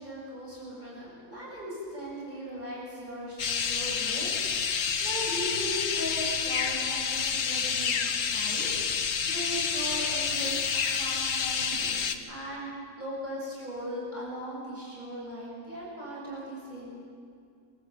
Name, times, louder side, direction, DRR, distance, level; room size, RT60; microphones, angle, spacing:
voice 1, 0.0-7.9 8.3-10.5 10.9-12.7 13.0-16.9, equal, 30° right, -6 dB, 7.3 m, -38 dB
sound 1, 3.4-12.1, left 6 dB, 60° left, 1.3 m, -29 dB
25.0 x 14.5 x 8.3 m, 2.3 s
omnidirectional pair, 1.6 m